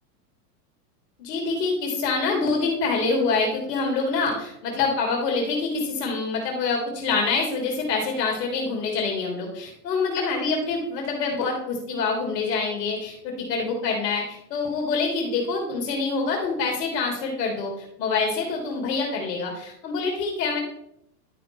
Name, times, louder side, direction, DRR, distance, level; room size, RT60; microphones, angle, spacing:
voice 1, 1.2-17.7 18.0-20.6, left 4 dB, 75° left, 0 dB, 2.6 m, -26 dB
11.5 x 5.5 x 3.5 m, 0.76 s
supercardioid pair, 120°, 49 cm